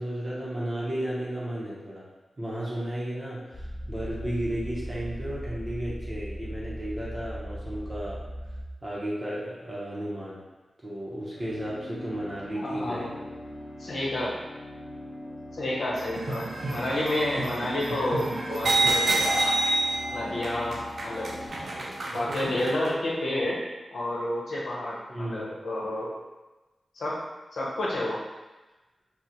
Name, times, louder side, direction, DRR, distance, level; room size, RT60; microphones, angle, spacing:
voice 1, 0.0-2.1 2.4-8.3 8.8-10.4 10.8-13.3 25.1-25.5, right 1 dB, 30° right, -7 dB, 0.7 m, -33 dB
sound 1, 3.5-8.6, equal, 25° left, 0.4 m, -37 dB
sound 2, 11.4-21.5, left 1 dB, 60° left, 1.0 m, -42 dB
voice 2, 12.5-13.1 13.8-14.4 15.5-19.3 20.1-21.4 22.1-23.6 23.9-26.1 26.9-27.2 27.5-28.2, left 1 dB, 80° left, -5 dB, 0.8 m, -30 dB
sound 3, 15.9-22.9, right 2 dB, 65° right, 0.4 m, -28 dB
3.8 x 2.1 x 2.8 m, 1.1 s
wide cardioid pair, 105°, 0 cm